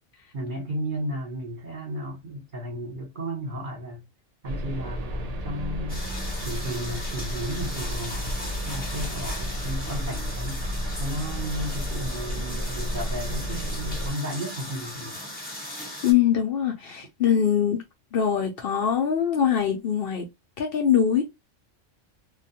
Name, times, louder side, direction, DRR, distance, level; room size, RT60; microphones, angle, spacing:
voice 1, 0.3-4.0 4.4-6.0 6.4-8.2 8.6-10.6 11.0-15.2, equal, 45° right, 1.0 m, -34 dB
sound 1, 4.4-14.1, equal, 70° right, 0.3 m, -32 dB
sound 2, 5.9-16.1, left 1 dB, 10° left, 0.7 m, -38 dB
voice 2, 16.0-17.8 18.1-20.2 20.6-21.2, left 8 dB, 60° left, 0.7 m, -23 dB
2.3 x 2.2 x 2.7 m
omnidirectional pair, 1.3 m